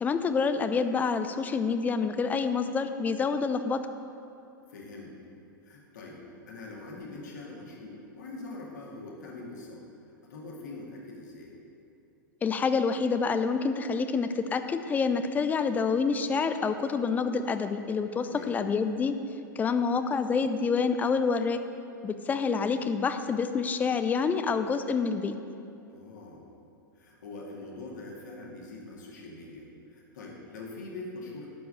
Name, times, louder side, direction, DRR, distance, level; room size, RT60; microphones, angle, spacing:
voice 1, 0.0-3.8 12.4-19.2 19.6-21.6 22.0-25.3, left 5 dB, 15° left, 9 dB, 0.5 m, -27 dB
voice 2, 4.7-5.1 5.6-6.2 6.5-9.8 10.3-11.6 18.2-18.6 25.9-26.4 27.0-31.5, left 2 dB, 60° left, -2 dB, 2.2 m, -43 dB
12.5 x 4.7 x 7.7 m, 2.6 s
figure-of-eight pair, 95°, 11 cm